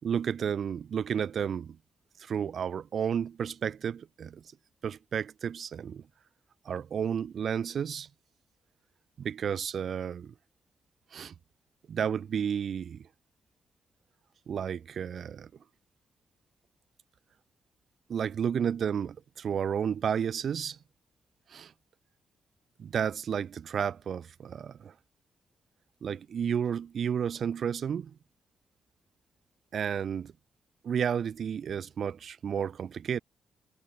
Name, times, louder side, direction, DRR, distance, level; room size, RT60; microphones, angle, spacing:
voice 1, 0.0-1.8 2.2-4.4 4.8-6.0 6.6-8.1 9.2-10.3 11.1-11.3 11.9-13.0 14.5-15.5 18.1-20.8 21.5-21.7 22.8-24.9 26.0-28.1 29.7-30.3 30.8-33.2, right 8 dB, 60° right, 6.1 m, -32 dB
cardioid pair, 100°, 0 cm